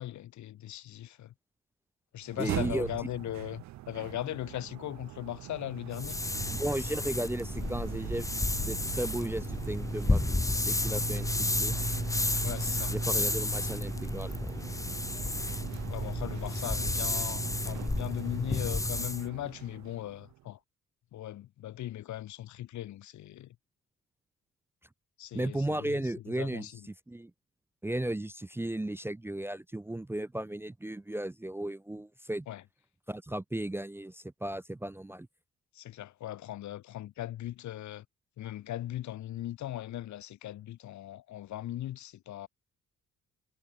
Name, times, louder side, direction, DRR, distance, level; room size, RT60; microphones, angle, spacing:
voice 1, 0.0-1.3 2.1-6.2 12.4-12.9 15.9-20.6 21.1-23.5 25.2-26.7 32.5-32.6 35.7-38.0 38.4-42.5, left 13 dB, 70° left, 1.2 m, -39 dB
sound 1, 2.2-20.4, right 15 dB, 65° right, 0.6 m, -41 dB
voice 2, 2.4-2.9 6.5-11.8 12.9-14.7 25.3-27.3 27.8-32.5 33.1-35.3, right 1 dB, 10° right, 0.5 m, -35 dB
sound 2, 5.9-19.2, left 2 dB, 10° left, 1.2 m, -32 dB
cardioid pair, 90°, 30 cm